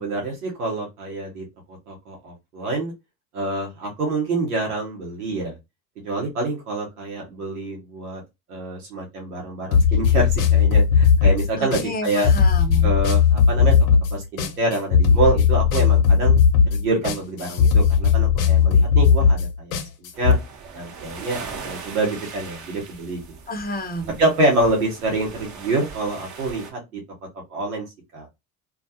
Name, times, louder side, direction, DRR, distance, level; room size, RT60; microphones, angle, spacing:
voice 1, 0.0-2.9 3.3-5.6 6.0-8.2 8.5-12.3 12.8-13.7 14.1-16.3 16.7-19.8 20.2-20.4 20.7-23.2 24.2-27.0 27.5-27.8 28.1-28.3, right 2 dB, 90° right, 0.9 m, -26 dB
sound 1, 9.7-20.4, left 6 dB, 75° left, 0.8 m, -17 dB
voice 2, 11.6-12.9 23.5-24.2, left 1 dB, 20° left, 0.8 m, -30 dB
sound 2, 20.1-26.7, right 5 dB, 40° right, 0.9 m, -39 dB
2.4 x 2.3 x 2.6 m
hypercardioid pair, 65°, 44 cm